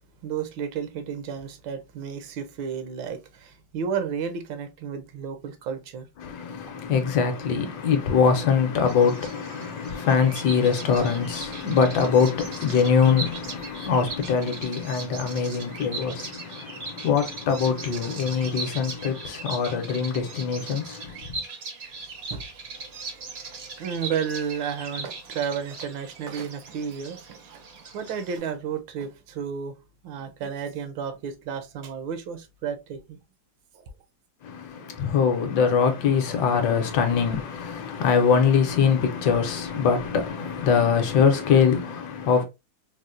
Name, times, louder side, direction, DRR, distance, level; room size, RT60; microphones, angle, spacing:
voice 1, 0.2-6.1 22.3-22.5 23.8-29.8 30.0-33.2 33.7-33.9, right 7 dB, 85° right, 1.4 m, -32 dB
voice 2, 6.2-21.4 34.4-42.4, left 6 dB, 70° left, 1.1 m, -23 dB
Bird vocalization bird call bird song, 8.8-28.4, right 3 dB, 65° right, 0.6 m, -39 dB
4.0 x 2.1 x 2.4 m
omnidirectional pair, 2.0 m